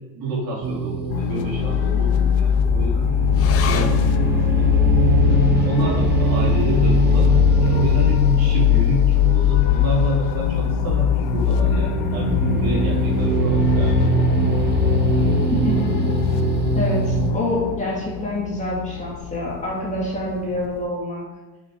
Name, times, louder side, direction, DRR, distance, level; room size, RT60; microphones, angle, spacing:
voice 1, 0.1-3.1 3.6-4.7 5.6-14.3, right 2 dB, 45° right, -3 dB, 3.0 m, -28 dB
sound 1, 0.6-17.3, right 2 dB, 25° right, 0.4 m, -22 dB
sound 2, 1.1-20.9, left 11 dB, 80° left, 0.8 m, -21 dB
sound 3, 3.3-10.1 10.4-10.5 10.9-11.5 12.1-12.2, left 8 dB, 30° left, 0.6 m, -38 dB
voice 2, 15.5-15.9 16.8-21.2, left 1 dB, 15° left, -4 dB, 1.9 m, -26 dB
6.7 x 6.2 x 6.2 m, 1.2 s
cardioid pair, 160°, 48 cm